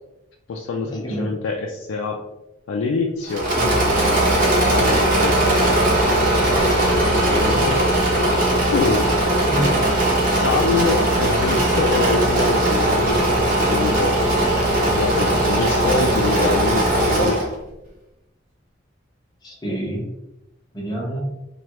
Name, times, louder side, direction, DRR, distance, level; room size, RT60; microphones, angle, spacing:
voice 1, 0.5-2.3 2.7-3.6 4.4-5.4 7.2-7.8 8.7-9.2 10.3-14.2 14.8-17.5, left 3 dB, 85° left, 1 dB, 0.3 m, -25 dB
Engine / Mechanisms, 3.3-17.5, right 1 dB, 45° right, 0.9 m, -19 dB
voice 2, 7.1-7.8 9.5-9.7 15.2-15.3 19.4-20.0 20.7-21.3, right 1 dB, 20° left, -3 dB, 0.8 m, -28 dB
3.1 x 2.3 x 2.9 m, 0.96 s
head